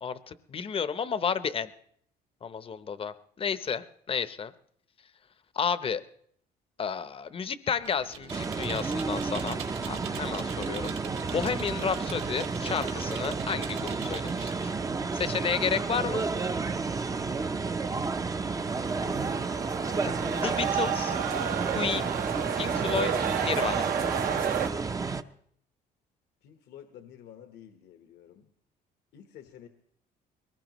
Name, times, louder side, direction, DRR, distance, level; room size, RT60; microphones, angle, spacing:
voice 1, 0.0-1.7 2.4-4.5 5.5-6.0 6.8-9.6 9.9-10.9 11.3-14.7 15.1-16.3 20.3-21.2 21.7-22.1 22.6-23.1 23.4-23.9, left 6 dB, 35° left, 13 dB, 0.7 m, -31 dB
Computer keyboard, 7.8-14.6, right 7 dB, 80° right, 2.5 m, -43 dB
sound 1, 8.3-25.2, right 4 dB, 20° right, 0.6 m, -31 dB
sound 2, 18.6-24.7, right 8 dB, 60° right, 0.8 m, -31 dB
voice 2, 26.4-28.5 29.1-29.7, left 10 dB, 80° left, 6 dB, 1.2 m, -51 dB
22.0 x 19.0 x 3.0 m, 0.66 s
cardioid pair, 110°, 17 cm